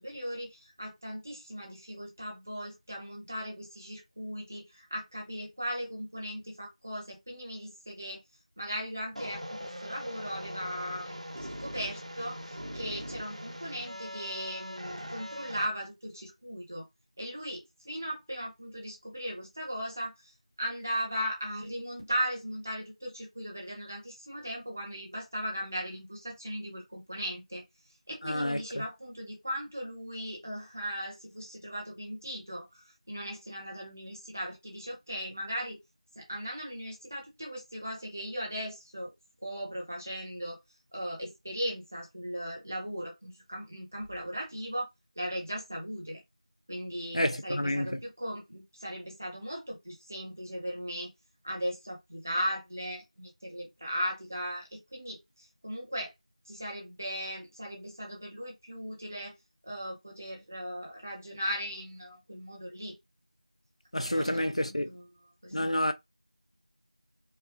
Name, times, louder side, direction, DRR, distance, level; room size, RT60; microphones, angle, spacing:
voice 1, 0.0-8.2 8.6-16.9 17.2-27.6 28.1-35.8 36.1-39.1 39.4-40.6 40.9-44.9 45.1-46.2 46.7-51.1 51.4-56.1 56.4-59.3 59.6-62.9 64.0-65.1 65.4-65.7, equal, 20° right, 1.4 m, -38 dB
sound 1, 9.1-15.6, equal, 65° right, 1.7 m, -41 dB
voice 2, 28.2-28.6 47.1-48.0 63.9-64.9 65.5-65.9, left 1 dB, 55° left, 0.5 m, -29 dB
4.6 x 2.4 x 3.1 m
figure-of-eight pair, 180°, 4 cm